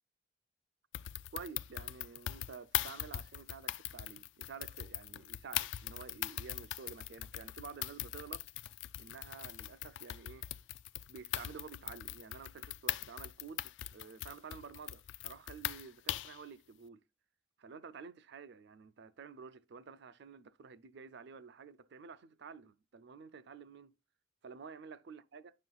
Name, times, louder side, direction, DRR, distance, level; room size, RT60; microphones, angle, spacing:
sound 1, 0.9-16.4, left 13 dB, 65° left, 0.3 m, -41 dB
voice 1, 1.3-8.5 9.0-10.4 11.1-17.0 17.6-24.0 24.4-25.5, right 5 dB, 60° right, 0.4 m, -51 dB
9.4 x 6.1 x 2.3 m
head